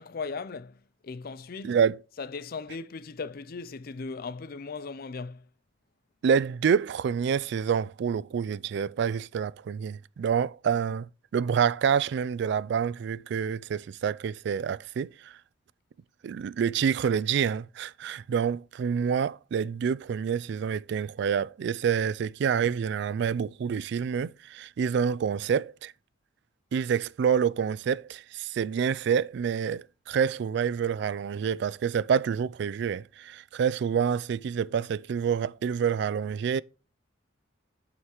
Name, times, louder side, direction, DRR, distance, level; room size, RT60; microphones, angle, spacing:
voice 1, 0.0-1.8 2.2-5.4, left 4 dB, 55° left, 0.5 m, -38 dB
voice 2, 1.6-2.0 6.2-15.4 16.2-25.9 26.7-36.6, right 7 dB, 65° right, 0.3 m, -27 dB
7.9 x 5.7 x 3.0 m
head